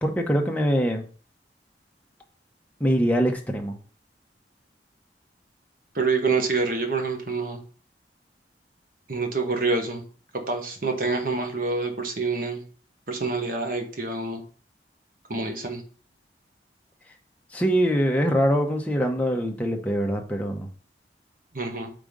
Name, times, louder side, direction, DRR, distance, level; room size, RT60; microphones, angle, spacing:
voice 1, 0.0-1.0 2.8-3.8 17.5-20.7, equal, 10° left, 1 dB, 0.8 m, -23 dB
voice 2, 5.9-7.6 9.1-10.0 10.5-12.6 13.1-14.4 15.3-15.8 21.5-21.9, right 3 dB, 50° right, 4 dB, 1.1 m, -26 dB
5.1 x 3.7 x 5.2 m, 0.41 s
head